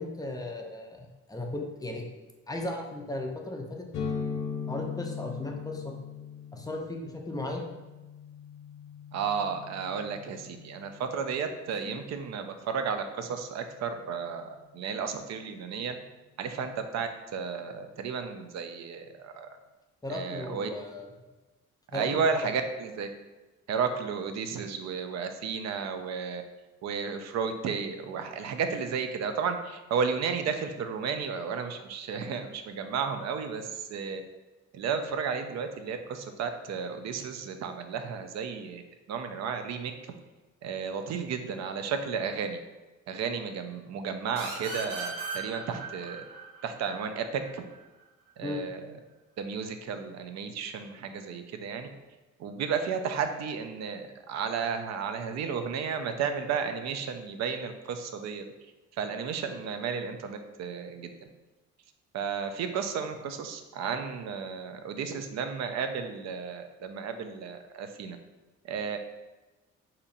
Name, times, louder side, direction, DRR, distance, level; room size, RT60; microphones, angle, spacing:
voice 1, 0.0-2.1 2.5-3.9 4.7-6.0 6.5-7.7 11.8-11.9 20.0-21.1 21.9-22.5 48.4-48.6, left 2 dB, 10° left, 1 dB, 0.5 m, -36 dB
sound 1, 3.9-11.5, left 6 dB, 80° left, 0.6 m, -39 dB
voice 2, 9.1-14.4 14.7-16.0 16.4-19.5 20.1-20.7 21.9-23.1 23.7-26.4 26.8-34.2 34.7-38.8 39.1-39.9 40.6-42.6 43.1-46.2 46.6-47.6 48.4-48.8 49.4-51.9 52.4-58.4 59.0-61.1 62.1-68.2 68.7-69.0, right 6 dB, 60° right, 7 dB, 0.5 m, -33 dB
sound 2, 44.4-47.8, right 4 dB, 85° right, 1.0 m, -38 dB
4.0 x 2.8 x 2.5 m, 1.1 s
cardioid pair, 90°, 30 cm